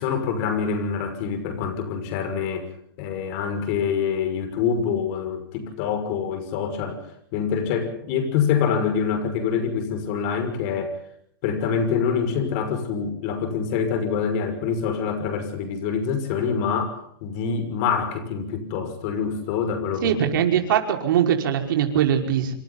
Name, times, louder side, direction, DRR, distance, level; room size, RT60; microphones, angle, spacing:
voice 1, 0.0-2.7 3.0-7.0 7.3-11.0 11.4-20.2, left 6 dB, 40° left, 9 dB, 6.1 m, -25 dB
voice 2, 20.0-22.5, right 9 dB, 60° right, 4 dB, 5.3 m, -21 dB
27.5 x 26.0 x 4.1 m, 0.68 s
hypercardioid pair, 150°, 12 cm